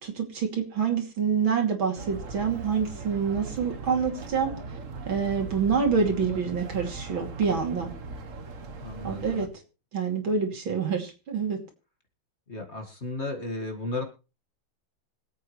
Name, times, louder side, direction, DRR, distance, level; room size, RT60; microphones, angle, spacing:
voice 1, 0.0-4.6 5.1-7.9 9.0-9.5 9.9-11.6, right 6 dB, 80° right, 3 dB, 3.5 m, -27 dB
sound 1, 2.0-9.5, right 4 dB, 45° right, 1.4 m, -39 dB
voice 2, 8.8-9.5 12.5-14.0, left 2 dB, 35° left, 3 dB, 2.1 m, -34 dB
25.0 x 8.5 x 3.2 m, 0.32 s
omnidirectional pair, 2.2 m